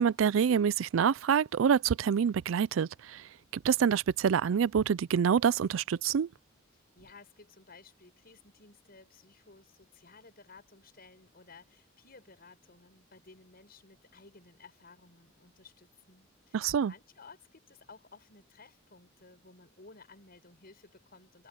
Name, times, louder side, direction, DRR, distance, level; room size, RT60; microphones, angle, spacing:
voice 1, 0.0-3.2 3.5-6.3 16.5-16.9, right 7 dB, 90° right, 0.4 m, -26 dB
voice 2, 6.7-21.5, left 4 dB, 50° left, 6.7 m, -56 dB
head